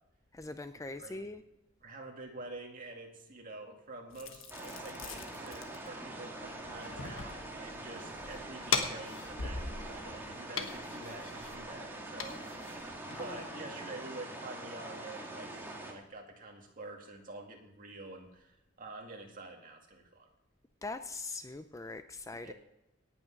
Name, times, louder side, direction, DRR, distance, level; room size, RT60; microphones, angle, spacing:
voice 1, 0.3-1.4 13.2-13.7 20.8-22.5, left 3 dB, 15° left, 10 dB, 0.4 m, -42 dB
voice 2, 1.0-1.4 1.8-20.3 22.4-22.5, right 2 dB, 40° right, 2 dB, 2.3 m, -47 dB
sound 1, 4.1-13.4, left 5 dB, 70° left, 1.3 m, -40 dB
sound 2, 4.5-15.9, right 2 dB, 10° right, 2.0 m, -44 dB
18.0 x 6.3 x 5.9 m, 0.94 s
head